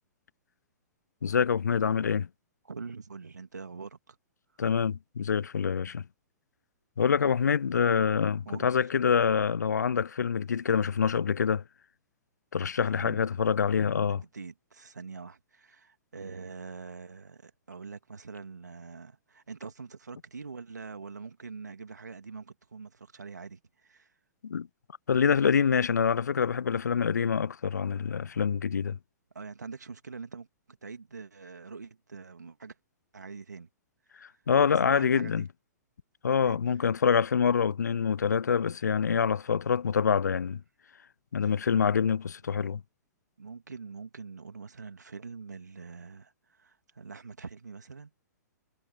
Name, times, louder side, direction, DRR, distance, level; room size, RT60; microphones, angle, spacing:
voice 1, 1.2-2.3 4.6-6.1 7.0-11.6 12.5-14.2 24.4-24.7 25.1-29.0 34.2-35.5 36.2-40.6 41.3-42.8, left 6 dB, 80° left, 0.4 m, -26 dB
voice 2, 2.7-4.2 8.5-8.8 12.9-13.3 13.9-24.1 29.3-30.5 30.8-32.8 33.1-33.7 34.8-35.4 36.3-36.6 41.4-41.5 42.6-42.7 43.4-48.1, right 4 dB, 80° right, 2.5 m, -44 dB
figure-of-eight pair, 115°, 9 cm